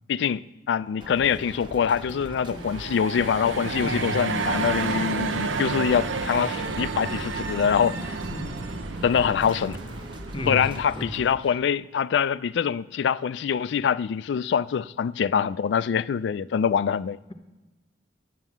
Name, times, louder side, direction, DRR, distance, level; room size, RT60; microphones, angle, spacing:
voice 1, 0.1-8.2 9.0-9.8 10.5-17.2, left 7 dB, 70° left, 0.3 m, -24 dB
sound 1, 1.0-11.3, right 1 dB, 25° right, 0.8 m, -41 dB
sound 2, 2.4-11.1, right 4 dB, 85° right, 0.7 m, -31 dB
voice 2, 3.8-4.3 6.4-6.5 8.3-8.6 10.3-11.2 11.4-11.6, left 1 dB, 25° left, 0.7 m, -34 dB
9.2 x 6.6 x 7.2 m
head